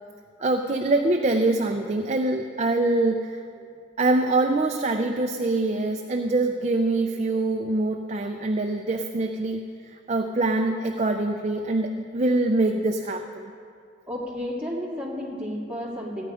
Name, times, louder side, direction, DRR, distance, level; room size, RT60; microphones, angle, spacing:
voice 1, 0.4-3.4 4.0-9.6 9.9-13.5, right 2 dB, 35° right, 4 dB, 0.5 m, -24 dB
voice 2, 14.1-16.3, left 1 dB, 5° right, -5 dB, 2.3 m, -32 dB
15.0 x 9.5 x 5.0 m, 2.4 s
head